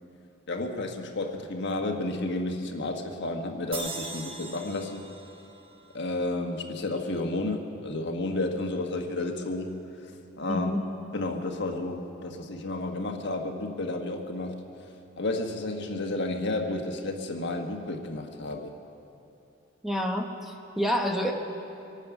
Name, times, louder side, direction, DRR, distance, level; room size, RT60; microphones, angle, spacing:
voice 1, 0.5-5.0 5.9-9.8 10.0-10.7 11.1-14.6 15.2-18.7, left 2 dB, 60° left, 3 dB, 1.3 m, -31 dB
sound 1, 3.7-7.0, right 3 dB, 25° right, 1.4 m, -41 dB
voice 2, 10.5-10.8 19.8-21.3, equal, ahead, 2 dB, 1.0 m, -28 dB
24.5 x 9.3 x 6.0 m, 2.8 s
head